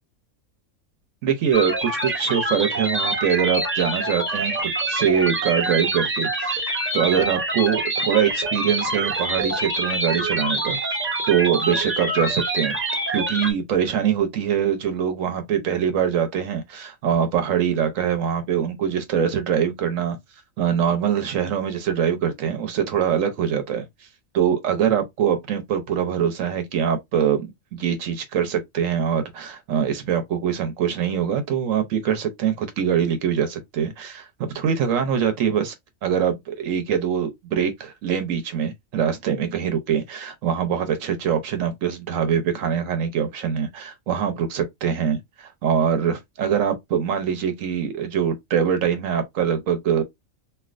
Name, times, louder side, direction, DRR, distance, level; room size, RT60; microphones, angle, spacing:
voice 1, 1.2-10.8 11.3-12.8 13.1-20.2 20.6-23.9 24.3-35.7 36.0-50.0, right 8 dB, 75° right, 1.0 m, -23 dB
sound 1, 1.5-13.5, right 2 dB, 10° right, 0.7 m, -25 dB
3.3 x 2.4 x 2.4 m
omnidirectional pair, 1.4 m